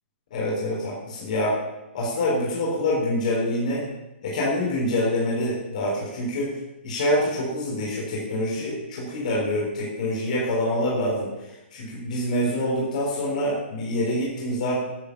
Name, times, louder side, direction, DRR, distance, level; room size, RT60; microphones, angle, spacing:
voice 1, 0.3-1.6 1.9-3.8 4.2-6.6 6.8-11.3 11.7-14.8, left 1 dB, 40° left, -5 dB, 4.1 m, -26 dB
10.0 x 7.4 x 7.0 m, 1.0 s
hypercardioid pair, 175°, 7 cm